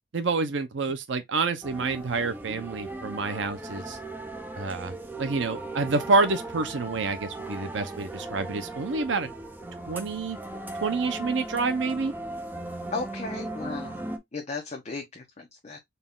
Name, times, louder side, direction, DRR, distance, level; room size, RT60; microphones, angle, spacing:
voice 1, 0.1-4.0 4.6-4.9 5.2-9.3 9.9-10.4 10.8-12.1, right 3 dB, 75° right, 0.6 m, -28 dB
sound 1, 1.6-14.2, right 2 dB, 10° right, 0.6 m, -37 dB
voice 2, 12.9-14.0 14.3-15.8, left 3 dB, 35° left, 0.8 m, -35 dB
4.1 x 2.3 x 3.5 m
head